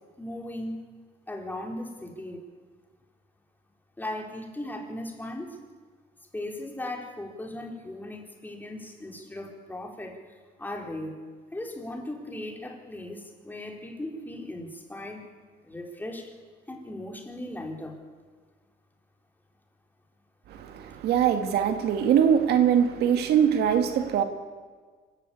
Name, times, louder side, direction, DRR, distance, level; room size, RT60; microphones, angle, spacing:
voice 1, 0.2-0.9 1.3-2.4 4.0-5.6 6.3-11.2 11.5-15.3 15.6-16.3 16.7-18.0, left 1 dB, 10° left, 1 dB, 4.2 m, -37 dB
voice 2, 20.5-24.2, right 8 dB, 75° right, 7 dB, 2.1 m, -22 dB
25.5 x 15.5 x 8.6 m, 1.5 s
cardioid pair, 110°, 17 cm